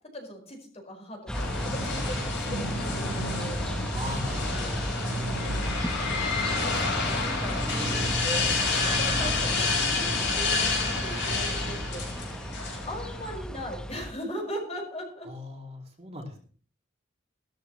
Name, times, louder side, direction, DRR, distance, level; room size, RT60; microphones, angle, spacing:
voice 1, 0.1-3.7 6.6-12.3 12.9-15.3, equal, 35° left, 2 dB, 4.8 m, -39 dB
sound 1, 1.3-13.3, left 4 dB, 65° left, 6.3 m, -30 dB
sound 2, 1.3-14.1, equal, 5° left, 0.9 m, -33 dB
voice 2, 3.9-4.8 15.5-15.6 16.0-16.5, equal, 35° right, 1 dB, 2.6 m, -37 dB
16.0 x 13.0 x 3.1 m, 0.43 s
head